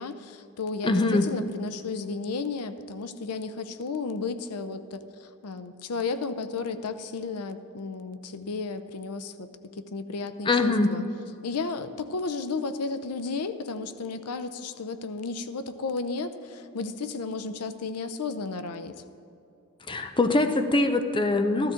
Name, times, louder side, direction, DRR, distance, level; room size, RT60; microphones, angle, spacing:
voice 1, 0.0-9.5 9.8-11.0 11.4-18.9, left 4 dB, 85° left, 11 dB, 0.6 m, -33 dB
voice 2, 0.8-1.3 10.4-10.9 19.9-21.7, left 2 dB, 20° left, 7 dB, 0.6 m, -23 dB
15.0 x 12.5 x 3.8 m, 2.6 s
head